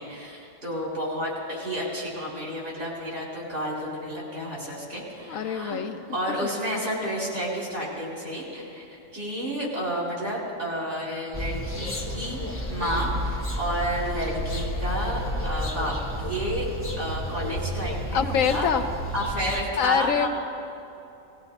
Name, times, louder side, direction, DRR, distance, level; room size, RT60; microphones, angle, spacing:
voice 1, 0.0-5.8 6.1-12.4 12.7-16.6 17.0-18.7 19.1-20.3, equal, 65° right, -5 dB, 4.5 m, -31 dB
voice 2, 5.3-6.0 6.4-6.5 18.1-18.9 19.8-20.3, left 8 dB, 85° left, 7 dB, 1.2 m, -25 dB
sound 1, 11.3-19.6, equal, 10° left, 1.1 m, -31 dB
19.5 x 15.5 x 4.1 m, 2.9 s
omnidirectional pair, 1.4 m